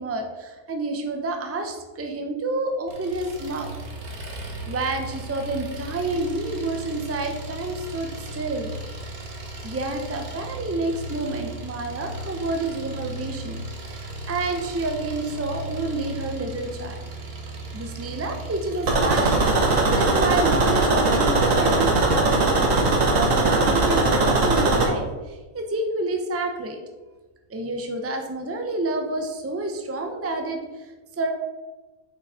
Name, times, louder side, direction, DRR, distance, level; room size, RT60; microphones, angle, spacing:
voice 1, 0.0-3.7 4.7-8.7 9.6-13.6 13.9-17.0 17.7-22.6 23.1-26.8 27.5-31.3, right 2 dB, 15° right, 4 dB, 0.5 m, -29 dB
Engine, 2.9-20.4, right 1 dB, 90° right, 1.7 m, -36 dB
sound 1, 18.9-24.9, right 2 dB, 65° right, 1.5 m, -20 dB
6.3 x 6.0 x 4.2 m, 1.2 s
omnidirectional pair, 1.5 m